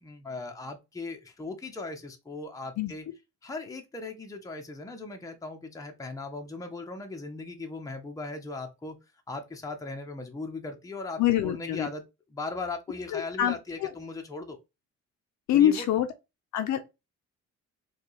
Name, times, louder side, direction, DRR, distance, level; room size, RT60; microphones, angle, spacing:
voice 1, 0.0-3.0 3.4-9.0 9.3-12.0 12.3-14.6 15.5-15.9 16.7-16.8, left 3 dB, 10° left, 0.7 m, -38 dB
voice 2, 11.2-11.9 13.1-13.5 13.8-13.9 15.5-16.1 16.5-16.8, left 11 dB, 65° left, 0.5 m, -24 dB
4.3 x 2.4 x 3.0 m
cardioid pair, 90°, 30 cm